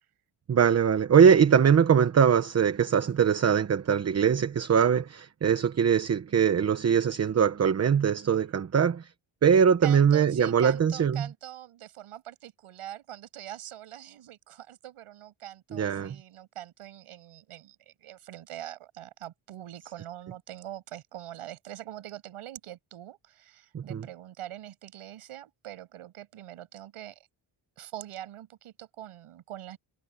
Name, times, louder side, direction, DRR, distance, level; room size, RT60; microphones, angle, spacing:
voice 1, 0.5-9.0 9.4-11.3 15.7-16.1 23.7-24.0, right 7 dB, 30° right, 1.0 m, -22 dB
voice 2, 9.8-27.3 27.8-29.8, right 12 dB, 80° right, 7.9 m, -43 dB
cardioid pair, 170°, 50 cm